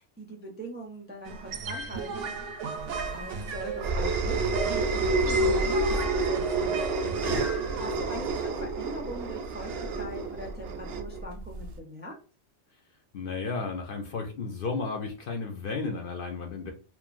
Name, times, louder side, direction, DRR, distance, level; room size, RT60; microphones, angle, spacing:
voice 1, 0.0-2.3 3.1-6.8 7.8-12.1, right 1 dB, 15° right, -1 dB, 0.3 m, -41 dB
sound 1, 1.2-8.0, right 5 dB, 85° right, 1.0 m, -35 dB
sound 2, 2.9-11.7, right 2 dB, 65° right, 0.7 m, -29 dB
voice 2, 7.0-7.4 13.1-16.7, left 4 dB, 60° left, 3 dB, 0.7 m, -33 dB
3.0 x 2.3 x 2.4 m, 0.35 s
omnidirectional pair, 1.2 m